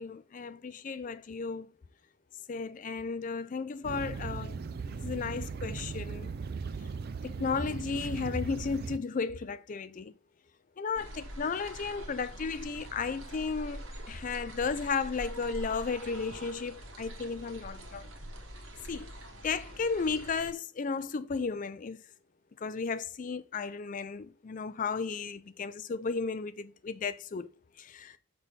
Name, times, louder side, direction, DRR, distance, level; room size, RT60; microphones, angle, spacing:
voice 1, 0.0-1.7 2.5-4.6 4.9-6.3 7.2-10.1 10.8-18.1 18.9-19.1 19.4-22.0 22.6-27.5 27.8-28.2, left 5 dB, 35° left, 0.4 m, -34 dB
sound 1, 3.8-9.0, right 4 dB, 45° right, 0.4 m, -38 dB
sound 2, 10.9-20.5, right 1 dB, 65° right, 1.5 m, -45 dB
5.8 x 3.4 x 5.5 m
head